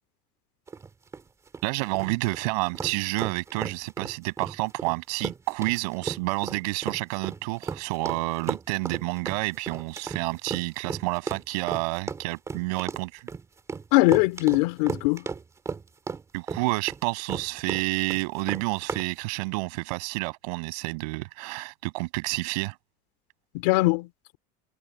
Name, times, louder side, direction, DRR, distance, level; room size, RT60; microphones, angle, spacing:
sound 1, 0.7-19.1, right 5 dB, 15° right, 3.6 m, -35 dB
voice 1, 1.6-13.3 16.3-22.8, right 27 dB, 90° right, 6.9 m, -29 dB
voice 2, 13.9-15.2 23.5-24.1, left 24 dB, 80° left, 4.6 m, -21 dB
cardioid pair, 175°, 20 cm